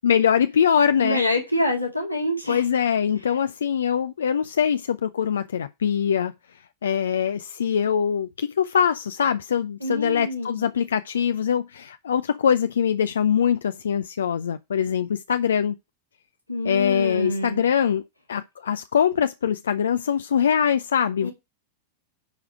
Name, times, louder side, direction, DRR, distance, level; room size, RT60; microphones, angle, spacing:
voice 1, 0.0-1.2 2.5-6.3 6.8-15.7 16.6-18.0 18.3-21.3, left 8 dB, 65° left, 0.4 m, -23 dB
voice 2, 1.0-2.6 9.8-10.6 16.5-17.6 21.2-21.3, left 1 dB, 90° left, 2.0 m, -26 dB
10.5 x 4.8 x 4.7 m
figure-of-eight pair, 90°, 0 cm